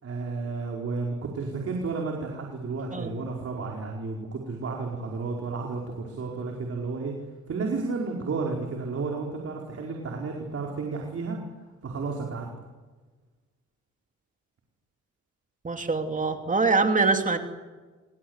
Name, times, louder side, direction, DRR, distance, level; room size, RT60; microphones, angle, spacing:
voice 1, 0.0-7.1 7.5-11.4 11.8-12.5, right 4 dB, 50° right, 0 dB, 4.9 m, -32 dB
voice 2, 15.6-17.4, right 3 dB, 25° right, 5 dB, 2.9 m, -24 dB
28.0 x 24.5 x 8.2 m, 1.3 s
cardioid pair, 90°, 30 cm